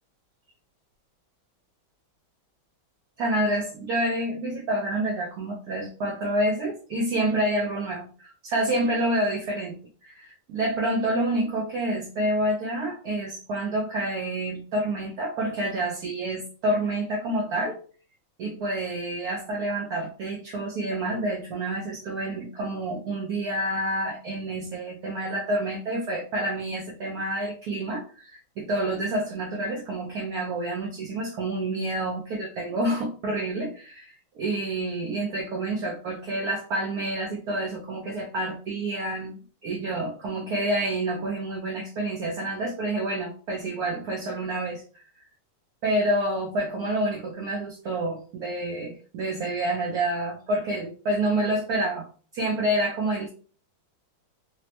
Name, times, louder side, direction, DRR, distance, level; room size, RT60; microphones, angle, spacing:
voice 1, 3.2-17.8 18.4-39.4 39.6-44.8 45.8-52.1 52.3-53.3, right 1 dB, 75° right, -1 dB, 0.8 m, -28 dB
3.3 x 2.0 x 2.8 m, 0.39 s
omnidirectional pair, 2.2 m